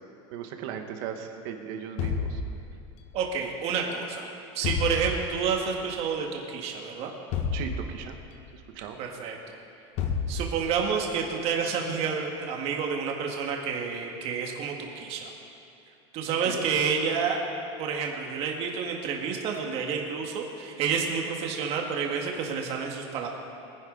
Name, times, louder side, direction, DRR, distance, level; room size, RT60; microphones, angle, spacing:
voice 1, 0.3-2.4 7.5-8.1 8.5-9.0 16.3-16.7, right 8 dB, 60° right, 5 dB, 1.5 m, -37 dB
sound 1, 2.0-3.1 4.6-5.6 7.3-8.4 10.0-10.9, left 5 dB, 45° left, 1.3 m, -31 dB
voice 2, 3.1-4.3 4.5-7.1 9.0-9.6 10.3-15.3 16.1-17.4 17.8-23.3, right 6 dB, 45° right, 1 dB, 1.8 m, -29 dB
22.5 x 10.5 x 4.0 m, 2.6 s
cardioid pair, 165°, 14 cm